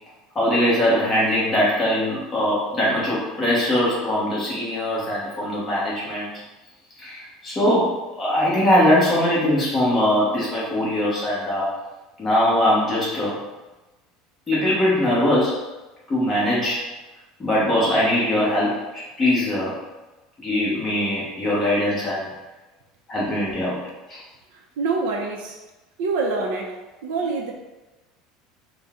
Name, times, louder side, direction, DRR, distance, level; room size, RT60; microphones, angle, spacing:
voice 1, 0.3-6.4 7.0-11.7 12.2-13.4 14.5-15.6 16.1-16.8 17.4-19.7 20.4-22.3 23.1-23.8 24.1-24.2, left 1 dB, 15° left, -8 dB, 1.1 m, -21 dB
voice 2, 24.5-25.6 26.0-26.7 27.0-27.6, right 3 dB, 80° right, 1 dB, 0.6 m, -26 dB
3.9 x 2.2 x 3.6 m, 1.1 s
cardioid pair, 175°, 0 cm